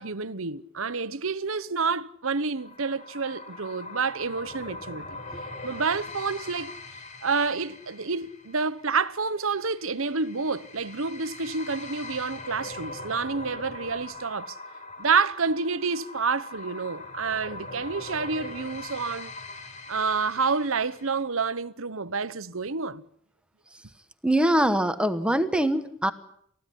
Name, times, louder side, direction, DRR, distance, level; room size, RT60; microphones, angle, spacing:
voice 1, 0.0-5.2 5.6-6.7 7.2-14.6 15.0-19.3 19.9-23.0, right 4 dB, 75° right, 1.0 m, -28 dB
sound 1, 2.6-21.2, left 2 dB, 35° left, 4.1 m, -42 dB
voice 2, 24.2-26.1, right 1 dB, 5° right, 1.1 m, -23 dB
29.5 x 15.5 x 10.0 m
head